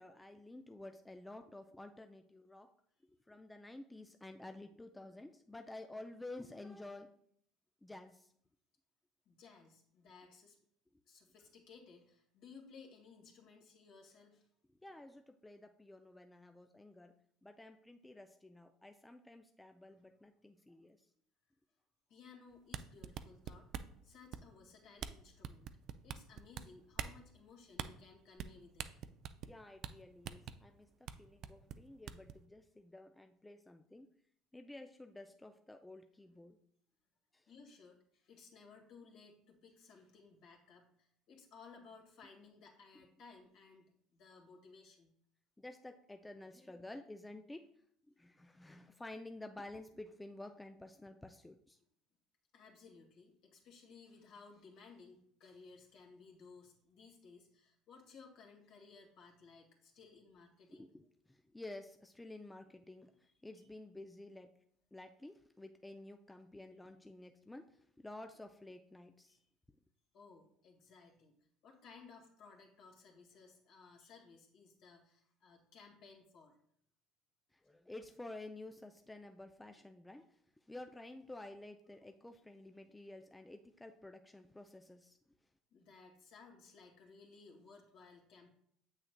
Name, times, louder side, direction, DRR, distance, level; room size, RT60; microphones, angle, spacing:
voice 1, 0.0-2.7 3.0-7.2 7.8-8.3 14.8-17.1 17.4-21.1 29.4-34.1 34.5-36.6 37.3-37.5 45.6-47.7 48.1-51.8 60.7-64.5 64.9-69.4 77.5-85.2, left 2 dB, 10° left, 6 dB, 0.4 m, -52 dB
voice 2, 9.3-10.6 11.1-14.5 19.9-20.0 22.1-23.7 24.0-25.7 26.0-28.9 37.5-45.1 52.5-60.9 69.3-69.4 70.1-71.4 71.6-76.6 85.7-88.5, left 4 dB, 65° left, 0 dB, 1.9 m, -59 dB
sound 1, 22.6-24.0 24.3-24.6 25.0-25.1 25.4-26.6 26.9-27.2 27.7-27.9 28.4-28.5 28.8-29.5 29.8-29.9 30.2-30.5 31.1-31.2 31.4-32.3, right 9 dB, 55° right, 0.3 m, -43 dB
7.6 x 6.3 x 2.2 m, 0.67 s
hypercardioid pair, 80°, 0 cm